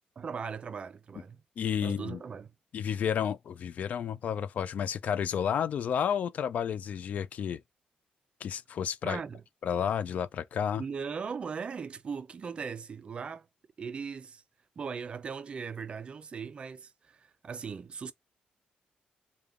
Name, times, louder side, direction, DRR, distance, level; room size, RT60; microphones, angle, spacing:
voice 1, 0.2-1.4 1.8-2.5 9.0-9.4 10.8-13.5 13.8-14.4 14.8-18.1, right 6 dB, 40° right, 0.4 m, -39 dB
voice 2, 1.6-2.2 2.7-7.6 8.4-9.2 9.6-10.8, left 8 dB, 60° left, 0.3 m, -31 dB
3.4 x 2.3 x 3.6 m
cardioid pair, 125°, 3 cm